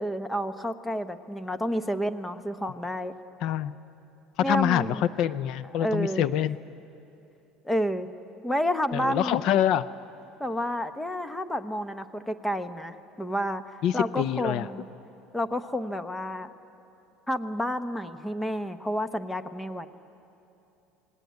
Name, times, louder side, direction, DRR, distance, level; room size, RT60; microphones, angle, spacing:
voice 1, 0.0-3.1 4.4-5.1 5.8-6.2 7.6-8.1 8.4-9.4 10.4-13.6 13.9-14.8 15.3-16.5 17.3-19.9, equal, 5° left, 10 dB, 0.9 m, -30 dB
voice 2, 3.4-3.7 4.5-6.6 8.9-9.9 13.8-14.7, left 10 dB, 55° left, 15 dB, 0.6 m, -25 dB
27.5 x 19.5 x 9.5 m, 2.9 s
cardioid pair, 140°, 0 cm